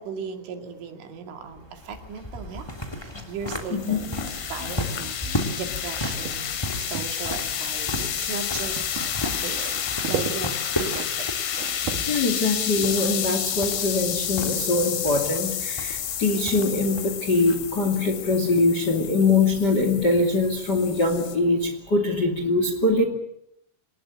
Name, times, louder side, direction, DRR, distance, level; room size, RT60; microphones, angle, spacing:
voice 1, 0.0-8.8 9.3-11.3, right 6 dB, 75° right, 5 dB, 4.7 m, -37 dB
sound 1, 1.4-19.1, equal, 10° left, 1.6 m, -36 dB
sound 2, 3.2-21.4, left 9 dB, 70° left, 4.7 m, -30 dB
sound 3, 3.5-5.9 6.2-7.2 8.6-12.7, right 7 dB, 55° right, 2.4 m, -36 dB
voice 2, 12.1-23.0, left 3 dB, 30° left, 5 dB, 2.0 m, -23 dB
25.5 x 20.0 x 8.6 m, 0.77 s
omnidirectional pair, 5.6 m